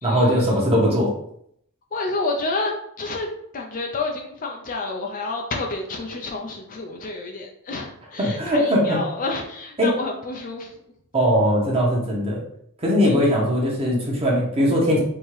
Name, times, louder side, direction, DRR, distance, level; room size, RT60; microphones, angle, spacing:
voice 1, 0.0-1.1 8.2-9.0 9.8-9.9 11.1-12.4 12.8-15.0, equal, 25° right, -3 dB, 1.2 m, -20 dB
voice 2, 1.9-2.7 3.0-3.3 3.5-10.7 13.0-13.1, left 3 dB, 40° left, 2 dB, 0.5 m, -29 dB
4.5 x 2.8 x 3.2 m, 0.70 s
head